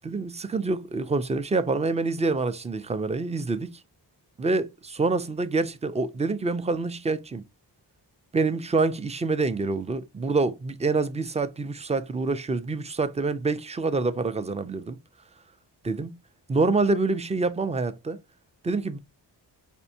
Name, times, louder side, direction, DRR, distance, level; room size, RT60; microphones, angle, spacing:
voice 1, 0.0-3.8 4.4-7.4 8.3-15.0 15.8-16.2 16.5-18.2 18.6-19.0, right 3 dB, 15° right, 0.4 m, -26 dB
4.4 x 2.5 x 2.7 m
wide cardioid pair, 90°, 42 cm